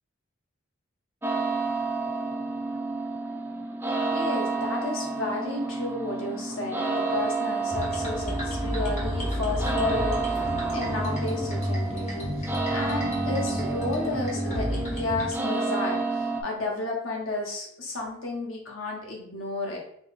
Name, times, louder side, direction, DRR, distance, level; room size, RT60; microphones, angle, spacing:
sound 1, 1.2-16.4, right 3 dB, 10° right, 0.4 m, -30 dB
voice 1, 4.1-19.8, left 2 dB, 85° left, -1 dB, 1.2 m, -32 dB
sound 2, 7.7-15.3, equal, 35° left, 1.3 m, -31 dB
4.0 x 2.3 x 4.0 m, 0.68 s
head